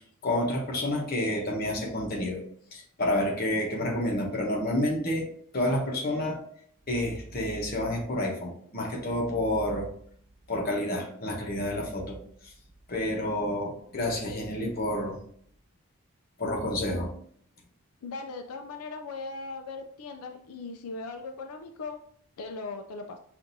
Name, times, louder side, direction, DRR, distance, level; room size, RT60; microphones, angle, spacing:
voice 1, 0.2-2.4 2.7-5.3 5.5-6.4 6.9-9.9 10.5-12.2 12.4-12.5 12.9-15.2 16.4-17.1, left 1 dB, 45° left, -1 dB, 0.9 m, -29 dB
voice 2, 18.0-22.0 22.4-23.2, left 3 dB, 90° left, 5 dB, 0.4 m, -39 dB
5.8 x 2.5 x 2.7 m, 0.62 s
head